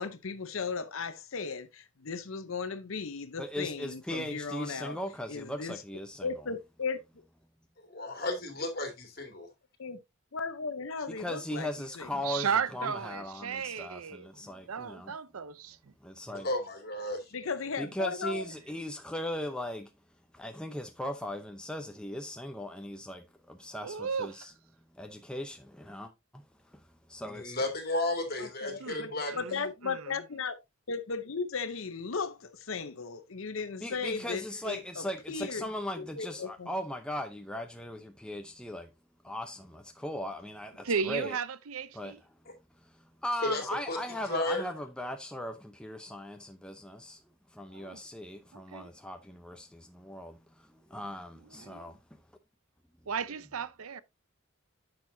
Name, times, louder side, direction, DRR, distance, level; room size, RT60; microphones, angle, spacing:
voice 1, 0.0-5.0 5.3-5.7 6.2-7.0 9.8-10.0 10.3-11.7 12.0-12.1 17.3-18.5 28.4-30.6 30.9-35.7 36.0-36.7, left 5 dB, 70° left, 0.8 m, -36 dB
voice 2, 3.4-6.5 11.1-15.1 16.0-16.5 17.8-19.9 20.3-24.5 24.9-27.5 33.8-38.9 39.2-41.4 41.9-42.1 42.8-47.2 47.5-52.2, left 1 dB, 5° left, 0.7 m, -38 dB
voice 3, 7.9-9.5 16.4-17.3 27.4-29.6 43.4-43.6 43.9-44.0 44.3-44.7, left 2 dB, 45° left, 2.6 m, -33 dB
voice 4, 12.2-15.9 23.8-24.5 28.8-30.2 40.8-42.2 47.7-48.0 48.5-48.9 51.6-51.8 53.1-54.0, right 6 dB, 85° right, 0.6 m, -35 dB
10.5 x 6.6 x 2.7 m
head